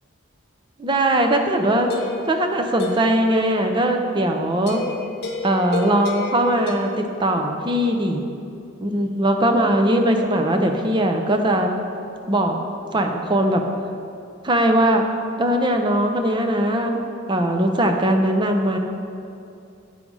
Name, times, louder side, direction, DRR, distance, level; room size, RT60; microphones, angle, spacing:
voice 1, 0.8-1.9 2.3-4.8 5.4-8.2 8.8-11.7 12.3-12.6 12.9-13.6 14.4-15.0 15.4-17.0 17.3-18.8, right 1 dB, 25° right, 4 dB, 0.6 m, -20 dB
sound 1, 1.1-3.2 4.7-6.8, left 3 dB, 55° left, 0.9 m, -32 dB
8.4 x 4.8 x 5.4 m, 2.6 s
head